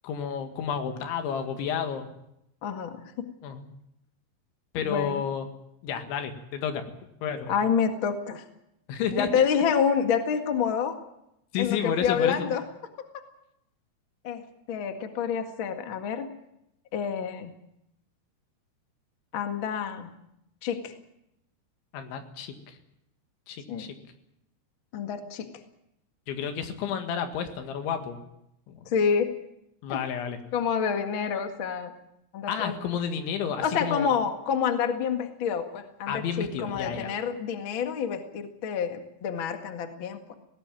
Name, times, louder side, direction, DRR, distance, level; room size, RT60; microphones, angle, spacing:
voice 1, 0.0-2.1 3.4-3.6 4.7-5.5 5.8-6.8 7.2-7.5 8.9-9.3 11.5-12.5 21.9-22.8 23.5-23.9 26.3-28.2 28.7-28.8 29.8-30.4 32.5-34.1 36.1-37.1, left 7 dB, 85° left, 7 dB, 4.2 m, -31 dB
voice 2, 2.6-3.2 4.8-5.2 7.5-8.4 9.1-11.0 11.6-12.6 14.2-16.3 16.9-17.5 19.3-20.1 20.6-20.9 23.7-23.9 24.9-25.5 28.8-29.3 29.9-30.0 30.5-31.9 32.3-32.7 33.6-40.3, left 7 dB, 50° left, 6 dB, 1.5 m, -28 dB
19.0 x 18.0 x 9.0 m, 0.81 s
omnidirectional pair, 5.2 m